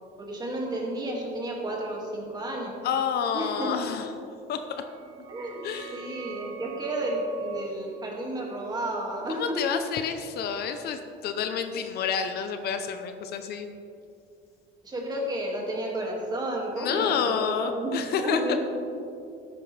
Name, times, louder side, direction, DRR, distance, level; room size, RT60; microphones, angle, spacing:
voice 1, 0.2-2.8 3.3-3.9 5.3-5.6 5.9-9.6 11.4-11.5 14.8-18.6, right 1 dB, 20° right, -1 dB, 2.1 m, -32 dB
voice 2, 2.8-4.1 4.5-4.8 5.6-6.1 9.3-13.7 16.8-18.6, left 7 dB, 55° left, 7 dB, 0.7 m, -29 dB
sound 1, 4.7-10.1, right 8 dB, 80° right, 1.3 m, -45 dB
14.0 x 10.5 x 3.3 m, 2.6 s
cardioid pair, 160°, 20 cm